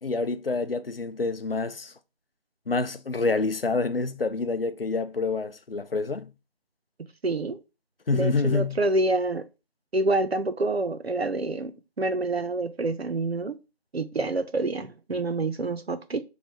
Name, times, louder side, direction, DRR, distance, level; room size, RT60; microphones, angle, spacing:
voice 1, 0.0-1.9 2.7-6.3 8.1-8.8, left 3 dB, 65° left, 0.5 m, -27 dB
voice 2, 7.2-7.6 8.1-9.4 9.9-13.6 13.9-16.2, right 2 dB, 70° right, 0.7 m, -27 dB
3.3 x 2.7 x 4.3 m
figure-of-eight pair, 180°, 32 cm